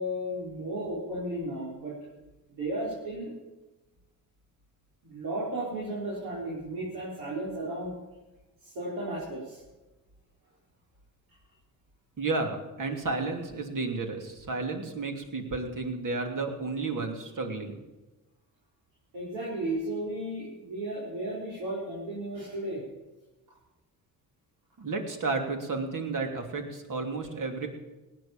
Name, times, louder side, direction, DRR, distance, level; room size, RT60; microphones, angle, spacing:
voice 1, 0.0-1.9 2.6-3.3 5.0-7.9 8.6-9.6 19.1-22.8, right 1 dB, 85° right, -7 dB, 4.4 m, -34 dB
voice 2, 12.2-17.8 24.8-27.7, right 3 dB, 55° right, 4 dB, 2.9 m, -32 dB
18.0 x 9.6 x 7.4 m, 1.1 s
cardioid pair, 70°, 36 cm